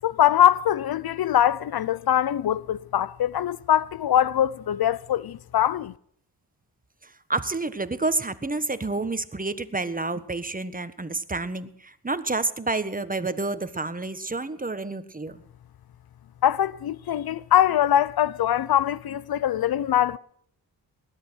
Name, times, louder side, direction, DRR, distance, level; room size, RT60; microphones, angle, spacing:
voice 1, 0.0-5.9 16.4-20.2, left 11 dB, 60° left, 0.7 m, -22 dB
voice 2, 7.0-15.4, right 3 dB, 20° right, 1.4 m, -29 dB
20.0 x 11.5 x 6.3 m
cardioid pair, 70°, 41 cm